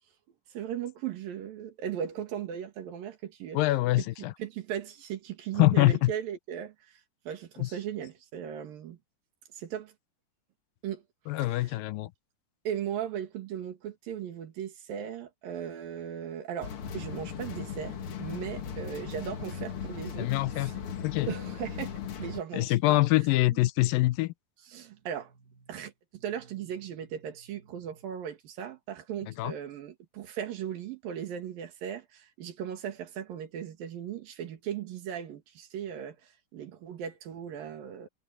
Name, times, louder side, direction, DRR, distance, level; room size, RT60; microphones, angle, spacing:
voice 1, 0.5-3.6 4.0-7.0 7.3-9.0 9.5-9.9 10.8-11.0 11.4-11.8 12.7-20.7 21.3-23.0 24.7-38.1, right 9 dB, 75° right, 3.7 m, -38 dB
voice 2, 3.5-4.3 5.6-6.1 7.6-7.7 11.3-12.1 20.2-20.7 21.0-21.3 22.5-24.3 29.4-29.5, left 18 dB, 80° left, 2.3 m, -24 dB
sound 1, 16.6-22.4, left 7 dB, 50° left, 1.9 m, -38 dB
omnidirectional pair, 4.1 m